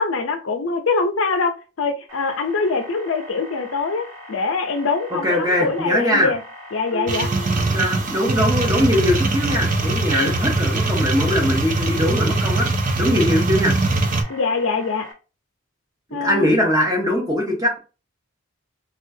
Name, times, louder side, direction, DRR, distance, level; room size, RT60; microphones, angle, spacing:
voice 1, 0.0-6.4 6.7-7.3 10.1-10.3 14.3-15.1 16.1-16.6, left 4 dB, 80° left, 7 dB, 0.6 m, -23 dB
sound 1, 2.1-15.1, left 1 dB, 85° right, 1.2 m, -41 dB
voice 2, 5.1-6.3 7.7-12.7 13.0-13.7 16.2-17.8, left 1 dB, 15° right, 0 dB, 0.8 m, -21 dB
Marimba xylophone, 6.9-8.6, right 4 dB, 15° left, 0.5 m, -36 dB
sound 2, 7.1-14.2, right 2 dB, 40° right, 0.4 m, -21 dB
3.5 x 2.4 x 2.6 m, 0.33 s
head